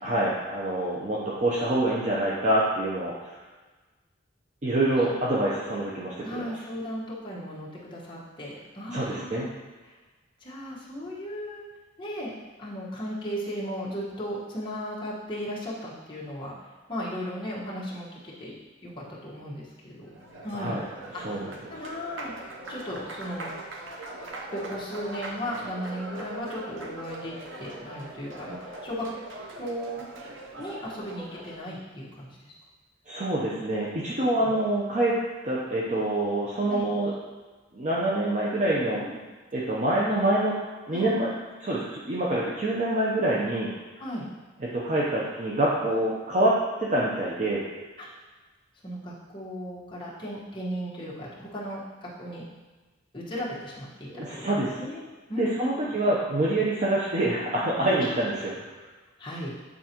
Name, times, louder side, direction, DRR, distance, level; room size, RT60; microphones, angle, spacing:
voice 1, 0.0-3.3 4.6-6.4 8.9-9.5 20.5-20.8 21.2-21.5 33.1-35.2 35.4-37.1 37.7-39.1 39.5-40.6 40.9-41.3 41.6-43.7 44.7-47.6 54.1-54.7 55.4-58.5, right 1 dB, 40° right, -6 dB, 0.7 m, -26 dB
voice 2, 6.2-9.5 9.8-9.9 10.4-11.6 12.0-12.3 12.6-16.5 16.9-18.5 18.8-20.1 20.4-20.8 21.1-22.3 22.7-23.5 24.5-29.1 29.6-30.1 30.5-32.5 34.4-34.5 36.7-36.9 38.9-39.2 40.9-41.1 44.0-44.3 48.0-48.1 48.8-52.4 53.1-54.5 54.8-55.0 55.3-55.9 58.0-58.2 59.2-59.5, equal, 25° left, -6 dB, 1.3 m, -36 dB
Applause, 19.9-31.7, right 2 dB, 85° right, 0.8 m, -41 dB
8.5 x 4.0 x 2.9 m, 1.3 s
head